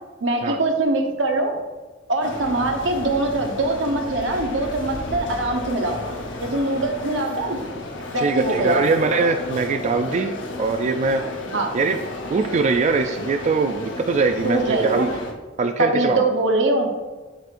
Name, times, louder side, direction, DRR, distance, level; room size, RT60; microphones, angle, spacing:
voice 1, 0.2-1.5 2.1-6.0 6.4-7.6 8.1-8.8 11.5-11.7 14.4-15.1 15.8-16.9, right 2 dB, 85° right, 3 dB, 0.9 m, -22 dB
sound 1, 2.2-15.3, left 2 dB, 75° left, 0.8 m, -33 dB
voice 2, 8.2-10.3 10.6-11.2 11.7-12.0 12.3-15.1 15.6-16.2, right 4 dB, 40° right, 6 dB, 0.3 m, -22 dB
7.5 x 5.2 x 2.5 m, 1.3 s
head